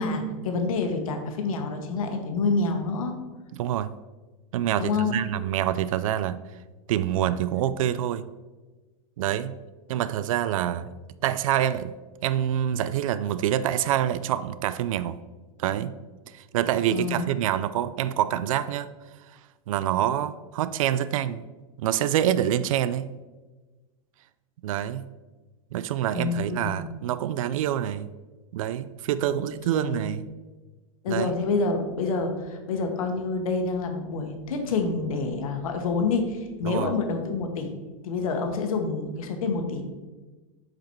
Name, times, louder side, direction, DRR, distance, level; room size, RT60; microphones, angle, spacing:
voice 1, 0.0-3.1 4.8-5.2 16.9-17.3 26.1-26.8 29.3-29.4 29.7-30.1 31.0-37.7 38.0-39.8, left 4 dB, 85° left, 5 dB, 1.4 m, -27 dB
voice 2, 3.5-3.9 4.5-6.4 6.9-8.2 9.2-9.5 9.9-10.9 11.2-11.9 12.2-15.2 15.6-15.9 16.3-18.9 19.7-21.4 21.8-23.1 24.6-25.0 25.7-28.1 28.5-30.3 31.1-31.3 36.6-36.9, right 11 dB, 75° right, 15 dB, 0.4 m, -26 dB
7.3 x 5.0 x 4.6 m, 1.2 s
supercardioid pair, 175°, 18 cm